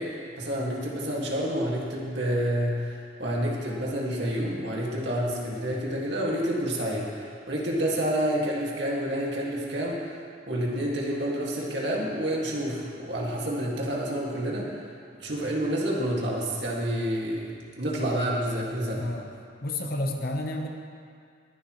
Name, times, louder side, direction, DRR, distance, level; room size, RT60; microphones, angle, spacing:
voice 1, 0.0-14.7 15.2-19.1, equal, 60° right, -3 dB, 2.2 m, -29 dB
voice 2, 19.0-19.3 19.6-20.7, left 1 dB, 50° left, 3 dB, 1.0 m, -30 dB
19.5 x 11.5 x 3.2 m, 2.2 s
head